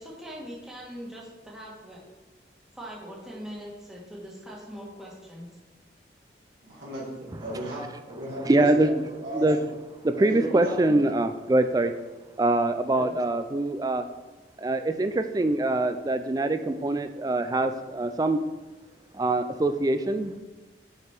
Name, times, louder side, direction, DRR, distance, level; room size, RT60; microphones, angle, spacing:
voice 1, 0.0-2.0 2.7-5.5, equal, 5° right, -5 dB, 1.4 m, -41 dB
voice 2, 6.6-8.9 9.2-9.5 10.2-10.9 12.9-13.1, equal, 75° right, -7 dB, 1.9 m, -35 dB
voice 3, 7.3-7.9 8.4-8.9 9.3-9.6 10.0-11.9 12.4-14.0 14.6-18.4 19.1-20.4, right 2 dB, 20° right, 8 dB, 0.3 m, -24 dB
6.4 x 5.0 x 4.5 m, 1.2 s
head